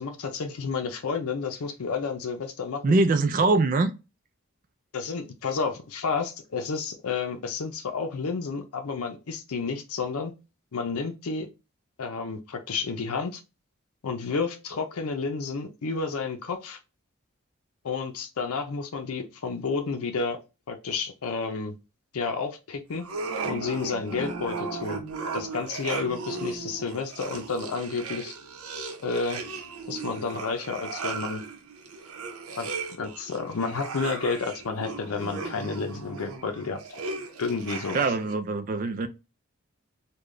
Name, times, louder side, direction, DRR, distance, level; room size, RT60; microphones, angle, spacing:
voice 1, 0.0-3.0 4.9-10.3 10.7-11.5 12.0-13.4 14.0-16.8 17.8-20.4 20.7-21.8 22.1-23.0 23.4-25.0 25.3-28.3 29.0-29.4 29.9-31.4 32.6-32.7 33.0-37.0 37.4-38.0, left 4 dB, 85° left, 0.5 m, -31 dB
voice 2, 2.8-3.9 37.9-39.1, right 3 dB, 40° right, 0.4 m, -23 dB
sound 1, 23.0-38.4, right 4 dB, 90° right, 0.7 m, -36 dB
3.8 x 2.2 x 3.2 m
head